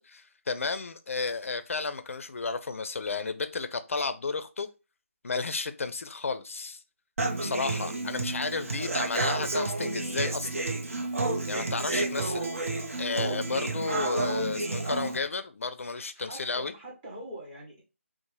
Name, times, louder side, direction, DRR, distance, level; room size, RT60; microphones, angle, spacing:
voice 1, 0.0-4.7 5.2-6.8 7.4-10.6 11.5-12.4 13.0-16.7, left 4 dB, 65° left, 0.4 m, -32 dB
Human voice / Acoustic guitar, 7.2-15.2, right 2 dB, 70° right, 0.6 m, -30 dB
voice 2, 8.4-8.8 11.9-12.1 13.1-13.4 16.2-17.8, right 1 dB, 15° right, 0.7 m, -45 dB
2.6 x 2.0 x 3.1 m
figure-of-eight pair, 165°, 8 cm